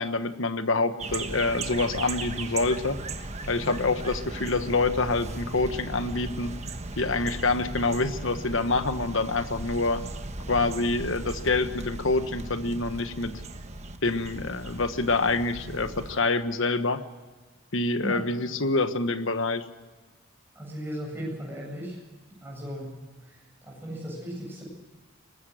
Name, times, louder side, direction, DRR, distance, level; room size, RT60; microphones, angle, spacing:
voice 1, 0.0-3.0 3.5-6.5 7.0-10.0 10.5-13.4 14.0-17.0 17.7-19.6, left 3 dB, 65° left, 10 dB, 1.2 m, -26 dB
sound 1, 1.0-16.2, right 2 dB, 30° right, 1.3 m, -37 dB
voice 2, 20.5-22.0 22.4-24.6, equal, 10° right, -2 dB, 7.9 m, -36 dB
23.0 x 20.0 x 6.3 m, 1.3 s
head